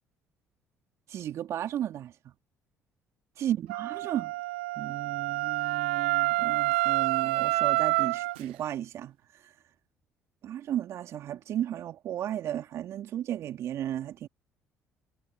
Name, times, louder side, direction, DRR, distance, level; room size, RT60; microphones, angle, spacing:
voice 1, 1.1-2.3 3.4-4.3 4.8-9.5 10.4-14.3, right 11 dB, 60° right, 2.6 m, -34 dB
Wind instrument woodwind instrument, 3.7-8.4, right 19 dB, 80° right, 0.6 m, -28 dB
hypercardioid pair, 55°, 6 cm